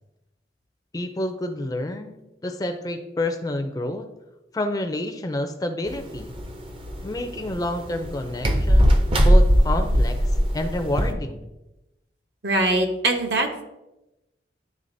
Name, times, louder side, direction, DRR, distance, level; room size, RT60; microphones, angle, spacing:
voice 1, 0.9-4.1 4.5-6.3 7.0-10.2 10.5-11.5, left 1 dB, 20° left, 7 dB, 0.4 m, -29 dB
sound 1, 5.9-11.1, equal, 30° right, 0.5 m, -20 dB
voice 2, 12.4-13.6, right 2 dB, 65° right, 3 dB, 0.9 m, -22 dB
10.5 x 3.5 x 2.6 m, 0.96 s
head